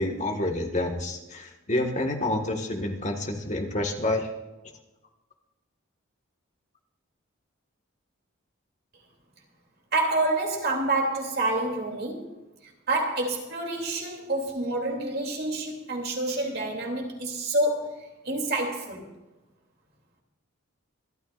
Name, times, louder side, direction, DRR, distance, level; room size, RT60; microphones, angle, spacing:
voice 1, 0.0-4.3, left 1 dB, 35° left, 2 dB, 1.7 m, -28 dB
voice 2, 9.9-12.3 12.9-19.0, right 2 dB, 45° right, 1 dB, 3.0 m, -28 dB
26.5 x 13.0 x 2.6 m, 1.1 s
head